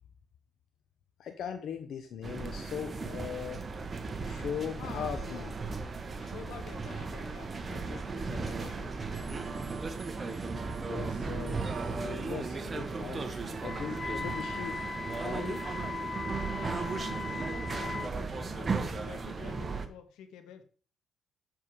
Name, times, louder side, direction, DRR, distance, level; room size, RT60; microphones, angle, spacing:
voice 1, 1.2-3.6 4.2-5.5 10.8-14.8 15.2-15.7, left 8 dB, 70° left, 6 dB, 0.9 m, -39 dB
sound 1, 2.2-19.9, right 4 dB, 35° right, 1.2 m, -36 dB
voice 2, 4.8-5.5 6.2-9.5 16.6-20.6, left 8 dB, 90° left, 9 dB, 1.4 m, -49 dB
Wind instrument woodwind instrument, 13.6-18.2, left 5 dB, 35° left, 0.5 m, -39 dB
7.8 x 6.9 x 4.7 m, 0.41 s
cardioid pair, 90°, 0 cm